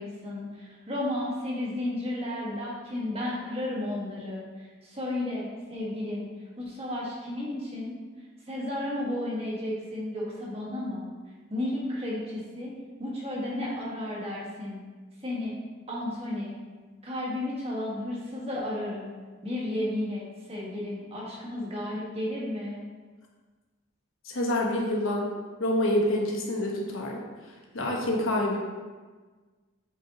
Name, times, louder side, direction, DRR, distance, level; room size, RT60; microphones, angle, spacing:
voice 1, 0.0-6.3 6.6-8.0 8.5-11.1 11.5-12.7 13.0-14.8 15.2-15.5 15.9-16.5 17.0-19.1 19.4-22.8, left 1 dB, 30° right, -5 dB, 1.5 m, -33 dB
voice 2, 24.2-25.3 25.6-27.2 27.7-28.6, left 1 dB, 80° left, -1 dB, 1.2 m, -27 dB
7.7 x 5.7 x 2.9 m, 1.4 s
head